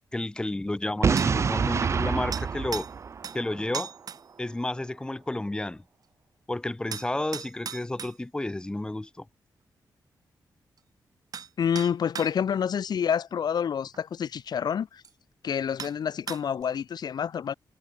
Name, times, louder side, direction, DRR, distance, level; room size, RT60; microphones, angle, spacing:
voice 1, 0.1-2.9 3.3-3.9 4.4-5.8 6.5-9.3, left 1 dB, 10° left, 1.8 m, -31 dB
Boom, 1.0-3.9, right 6 dB, 40° right, 0.7 m, -27 dB
sound 1, 1.2-1.4 2.3-2.9 3.2-3.4 3.7-4.2 6.9-8.2 10.8-10.9 11.3-11.5 11.8-12.3 13.9-14.0 15.0-15.1 15.8-16.0 16.3-16.6, right 7 dB, 55° right, 3.3 m, -37 dB
voice 2, 11.6-15.0 15.4-17.5, left 8 dB, 65° left, 3.5 m, -28 dB
wide cardioid pair, 155°, 8 cm